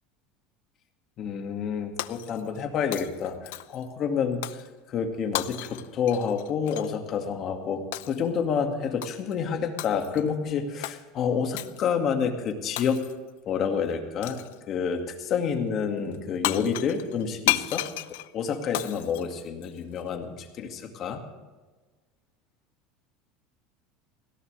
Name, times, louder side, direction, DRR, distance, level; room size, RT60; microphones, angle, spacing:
voice 1, 1.2-13.1 13.5-17.8 18.3-21.2, left 6 dB, 40° left, 4 dB, 2.1 m, -29 dB
Shatter, 2.0-2.6 2.9-3.9 4.4-4.7 5.3-6.9 7.9-8.3 9.0-9.3 9.8-10.3 10.8-11.0 11.6-11.8 12.8-13.3 14.2-14.6 16.1-16.2 16.4-20.0, left 17 dB, 80° left, 0.6 m, -33 dB
18.0 x 17.0 x 3.4 m, 1.3 s
supercardioid pair, 145°, 0 cm